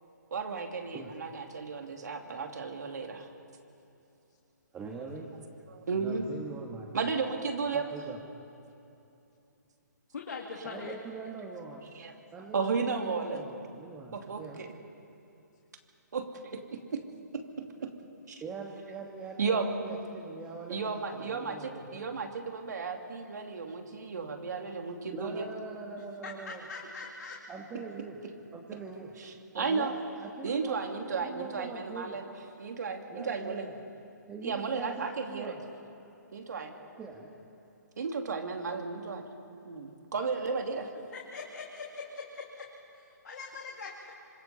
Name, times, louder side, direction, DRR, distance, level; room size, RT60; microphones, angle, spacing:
voice 1, 0.3-3.3 5.7-6.3 6.9-7.9 11.9-12.1 12.5-13.4 14.1-14.7 16.1-17.0 17.3-17.9 18.3-18.4 19.4-19.8 20.7-25.4 29.2-29.9 30.4-32.3 32.6-33.7 34.4-35.5 36.3-36.7 38.0-39.3 39.6-40.9, right 4 dB, 65° right, 4 dB, 2.7 m, -34 dB
voice 2, 4.7-5.3 5.9-6.9 7.7-8.2 10.6-11.9 12.3-14.6 18.4-22.0 25.1-26.6 27.5-28.2 28.5-29.1 29.6-30.8 31.2-32.2 33.1-33.8 34.3-35.6 37.0-37.3, right 4 dB, 15° right, 0 dB, 1.8 m, -43 dB
voice 3, 10.1-11.0 26.0-27.4 41.1-42.7 42.9-44.1, left 4 dB, 65° left, -1 dB, 2.7 m, -42 dB
27.0 x 25.5 x 4.3 m, 2.8 s
figure-of-eight pair, 140°, 10 cm